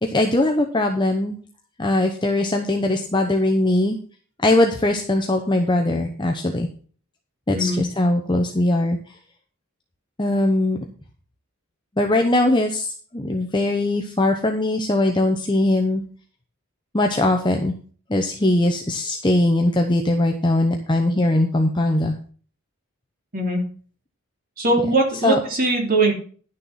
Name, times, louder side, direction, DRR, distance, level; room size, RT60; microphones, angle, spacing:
voice 1, 0.0-1.4 1.8-4.0 4.4-6.7 7.5-9.0 10.2-10.8 12.0-16.0 16.9-17.7 18.1-22.1 25.2-25.4, left 1 dB, 20° left, 3 dB, 0.9 m, -20 dB
voice 2, 24.6-26.1, right 2 dB, 40° right, 1 dB, 2.9 m, -20 dB
11.0 x 6.6 x 5.7 m, 0.43 s
head